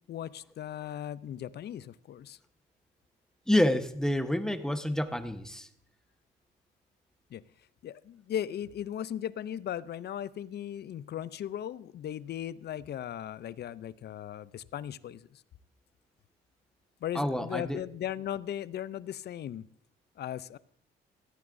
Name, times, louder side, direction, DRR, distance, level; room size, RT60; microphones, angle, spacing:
voice 1, 0.1-2.4 7.3-7.4 7.8-15.4 17.0-19.7 20.2-20.6, left 10 dB, 55° left, 18 dB, 0.5 m, -37 dB
voice 2, 3.5-5.7 17.1-17.8, left 1 dB, 5° left, 8 dB, 1.0 m, -28 dB
17.5 x 14.5 x 2.6 m, 0.70 s
cardioid pair, 90°, 20 cm